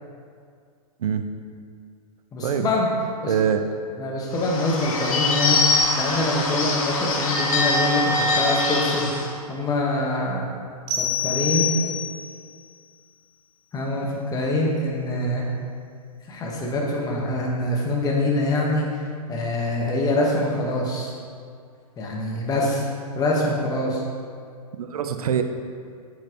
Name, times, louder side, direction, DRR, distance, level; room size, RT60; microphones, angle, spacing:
voice 1, 2.3-2.9 3.2-3.3 4.0-9.1 9.5-10.5 11.0-11.7 13.7-15.5 16.3-18.9 19.3-21.1 22.0-22.9 23.1-24.0, left 2 dB, 20° left, -2 dB, 1.5 m, -24 dB
voice 2, 3.3-3.6 24.8-25.4, right 8 dB, 70° right, 8 dB, 0.7 m, -23 dB
Bird / Bell, 4.3-9.3, left 3 dB, 60° left, 1.7 m, -23 dB
sound 1, 10.9-12.4, left 7 dB, 50° right, 1.9 m, -26 dB
8.9 x 7.6 x 3.1 m, 2.2 s
hypercardioid pair, 125°, 20 cm